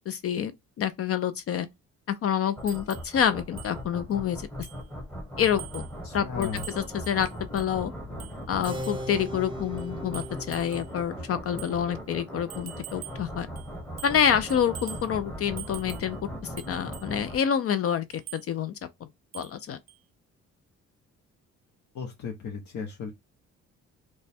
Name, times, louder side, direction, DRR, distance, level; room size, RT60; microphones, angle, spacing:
voice 1, 0.1-1.7 2.1-4.5 5.4-5.9 6.1-6.5 6.8-7.9 8.5-13.5 14.0-16.2 16.4-18.1 18.3-18.7 19.3-19.8, left 8 dB, 50° left, 0.4 m, -27 dB
sound 1, 2.6-17.4, equal, 5° left, 1.1 m, -39 dB
sound 2, 2.7-3.1 3.6-3.7 4.1-4.2 4.6-4.9 5.4-5.9 6.4-7.7 8.2-9.1 9.8-10.9 11.6-11.8 12.5-13.3 13.6-14.2 14.5-15.1 15.6-16.1 16.6-17.1 18.1-18.5 19.3-19.6 19.9-20.0, right 14 dB, 60° right, 0.5 m, -45 dB
voice 2, 6.0-6.6 21.9-23.1, left 6 dB, 65° left, 0.9 m, -36 dB
Keyboard (musical), 8.7-14.8, equal, 15° right, 0.7 m, -41 dB
3.1 x 2.2 x 4.2 m
cardioid pair, 90°, 30 cm